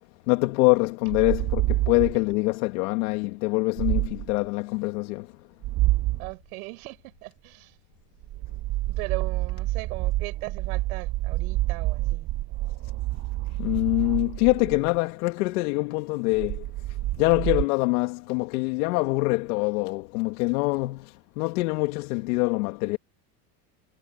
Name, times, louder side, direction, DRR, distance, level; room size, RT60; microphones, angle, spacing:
voice 1, 0.3-5.3 13.6-16.7 17.2-23.0, left 24 dB, 75° left, 2.3 m, -24 dB
sound 1, 1.1-2.3 3.8-4.4 5.6-6.3 8.2-15.0 16.3-17.7, right 18 dB, 35° right, 0.5 m, -28 dB
voice 2, 6.2-7.8 9.0-12.3, right 24 dB, 80° right, 7.9 m, -38 dB
supercardioid pair, 110°, 43 cm